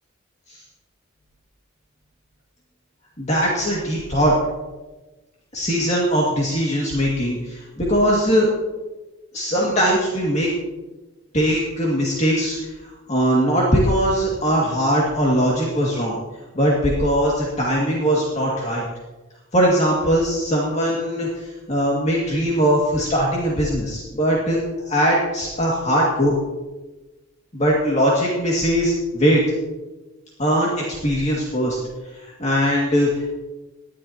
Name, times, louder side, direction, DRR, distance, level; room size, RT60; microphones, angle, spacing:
voice 1, 3.2-4.4 5.5-8.5 9.3-10.5 11.3-16.2 16.5-18.8 19.5-24.6 24.8-26.4 27.5-29.4 30.4-31.8 32.1-33.3, equal, 35° left, -4 dB, 2.1 m, -20 dB
20.0 x 11.5 x 2.9 m, 1.1 s
head